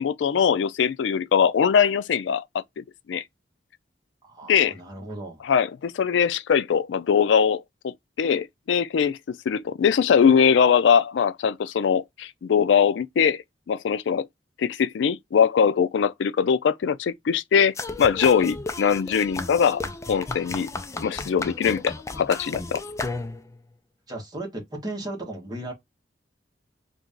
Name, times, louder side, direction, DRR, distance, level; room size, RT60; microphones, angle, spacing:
voice 1, 0.0-2.4 2.8-3.2 4.5-4.7 5.4-13.4 13.7-14.3 14.6-19.8 20.1-20.7 21.0-22.8, left 7 dB, 80° left, 0.4 m, -22 dB
voice 2, 4.2-5.4 24.1-25.7, right 1 dB, 25° right, 1.4 m, -35 dB
sound 1, 17.8-23.6, left 3 dB, 15° left, 0.4 m, -34 dB
2.9 x 2.7 x 3.5 m
head